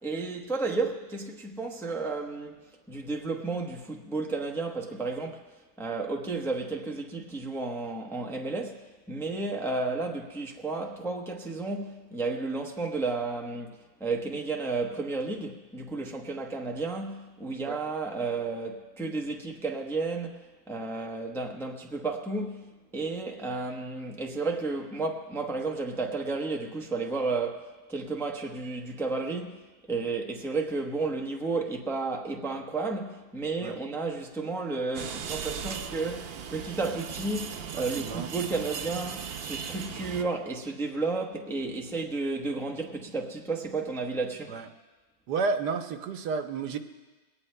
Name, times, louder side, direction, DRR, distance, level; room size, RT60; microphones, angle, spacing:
voice 1, 0.0-2.6 2.9-5.4 5.8-29.6 29.9-44.6, right 3 dB, ahead, 0.6 m, -32 dB
sound 1, 34.9-40.2, right 7 dB, 65° right, 0.6 m, -37 dB
voice 2, 37.7-38.3 44.5-44.7 45.3-46.8, right 4 dB, 80° right, 1.4 m, -31 dB
21.5 x 17.5 x 2.2 m
omnidirectional pair, 1.8 m